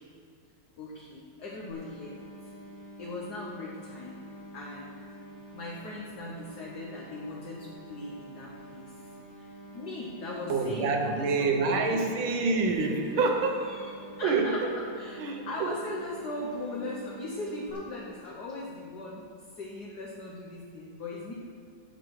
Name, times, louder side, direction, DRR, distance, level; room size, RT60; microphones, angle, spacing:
voice 1, 0.8-2.1 3.0-4.2 4.5-5.0 5.5-8.8 9.4-12.1 13.1-13.2 13.6-13.9 14.2-14.6 15.0-19.2 19.6-21.3, left 2 dB, 55° left, -3 dB, 1.6 m, -39 dB
sound 1, 1.7-17.7, right 1 dB, 75° left, 2.7 m, -48 dB
voice 2, 10.5-13.6 14.2-14.7 15.2-15.7, right 4 dB, 80° right, 4 dB, 1.9 m, -27 dB
16.5 x 6.5 x 4.8 m, 2.2 s
omnidirectional pair, 2.2 m